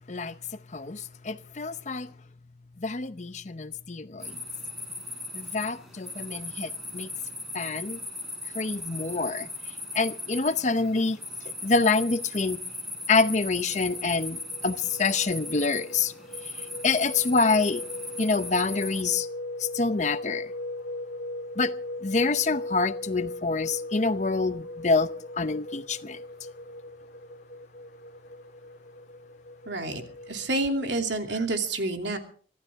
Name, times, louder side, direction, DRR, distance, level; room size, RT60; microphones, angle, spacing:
voice 1, 0.1-2.1 2.8-4.4 5.3-7.1 7.5-8.0 8.5-9.5 9.9-11.2 11.6-12.6 13.1-16.1 16.4-17.8 18.2-19.3 19.6-20.5 21.6-21.7 22.0-26.2, left 4 dB, 40° left, 0.7 m, -27 dB
sound 1, 4.2-19.0, left 2 dB, ahead, 6.0 m, -38 dB
sound 2, 13.3-30.9, left 1 dB, 55° left, 2.0 m, -39 dB
voice 2, 29.7-32.2, right 2 dB, 70° right, 2.8 m, -29 dB
24.5 x 15.0 x 3.5 m
head